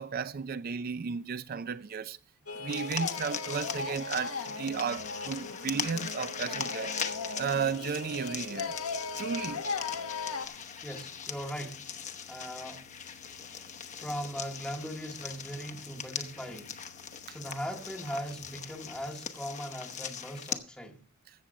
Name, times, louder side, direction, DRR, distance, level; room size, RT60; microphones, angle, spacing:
voice 1, 0.0-2.2 2.6-7.0 7.4-8.8 9.2-9.6 17.3-17.4, right 6 dB, 45° right, 0.4 m, -34 dB
sound 1, 2.5-10.5, left 4 dB, 85° left, 1.2 m, -37 dB
sound 2, 2.7-20.6, left 7 dB, 35° left, 0.8 m, -40 dB
sound 3, 4.9-19.0, left 3 dB, 60° right, 2.8 m, -58 dB
voice 2, 10.8-11.9 12.3-12.9 13.3-16.8 17.3-21.0, equal, 5° left, 1.0 m, -40 dB
15.0 x 7.2 x 5.0 m
head